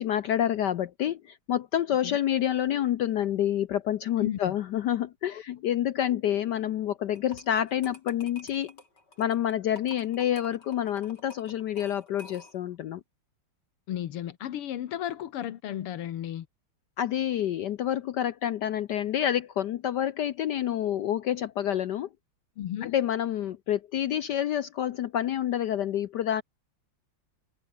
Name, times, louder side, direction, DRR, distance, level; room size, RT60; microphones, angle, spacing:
voice 1, 0.0-8.7 9.2-13.0 17.0-22.1 22.8-26.4, left 11 dB, 65° left, 1.1 m, -28 dB
voice 2, 4.2-4.5 5.3-5.4 13.9-16.5 22.6-22.9, left 11 dB, 85° left, 2.1 m, -34 dB
sound 1, 7.2-12.7, left 3 dB, 50° left, 5.8 m, -50 dB
omnidirectional pair, 2.4 m